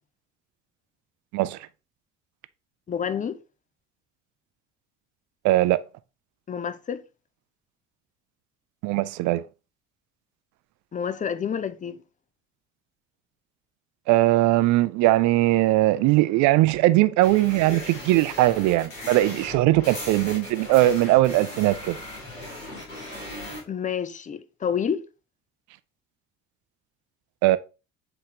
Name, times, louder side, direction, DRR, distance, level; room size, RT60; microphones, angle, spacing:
voice 1, 2.9-3.4 6.5-7.0 10.9-12.0 23.7-25.0, left 7 dB, 20° left, 0.6 m, -29 dB
voice 2, 5.4-5.8 8.8-9.4 14.1-22.0 27.4-27.6, right 17 dB, 50° right, 0.6 m, -20 dB
sound 1, 17.2-23.6, left 1 dB, 80° left, 2.4 m, -38 dB
7.9 x 4.2 x 3.3 m
figure-of-eight pair, 55°, 38 cm